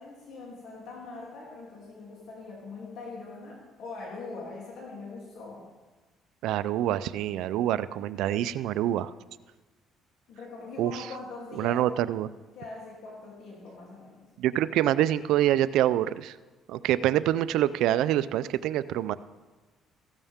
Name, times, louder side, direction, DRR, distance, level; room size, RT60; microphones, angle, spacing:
voice 1, 0.0-5.6 10.3-12.1 12.5-14.2, left 3 dB, 70° left, -3 dB, 3.0 m, -42 dB
voice 2, 6.4-9.1 10.8-11.1 11.6-12.3 14.4-16.4 16.7-19.1, right 12 dB, 80° right, 16 dB, 0.4 m, -26 dB
15.5 x 12.5 x 3.6 m, 1.2 s
cardioid pair, 95°, 0 cm